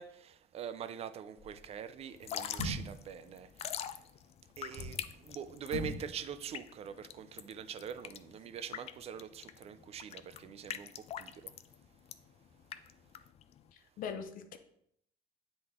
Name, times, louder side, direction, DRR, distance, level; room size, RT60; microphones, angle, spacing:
voice 1, 0.0-3.9 4.6-11.5, right 8 dB, 40° right, 0.4 m, -44 dB
sound 1, 1.4-1.7 2.5-3.1 4.5-5.0 5.6-6.0 6.3-6.4, left 1 dB, 5° right, 2.8 m, -39 dB
Drip / Trickle dribble, 2.1-13.7, left 10 dB, 40° left, 0.4 m, -44 dB
voice 2, 13.7-14.6, left 7 dB, 55° left, 0.8 m, -42 dB
9.5 x 3.9 x 3.6 m
cardioid pair, 135°, 16 cm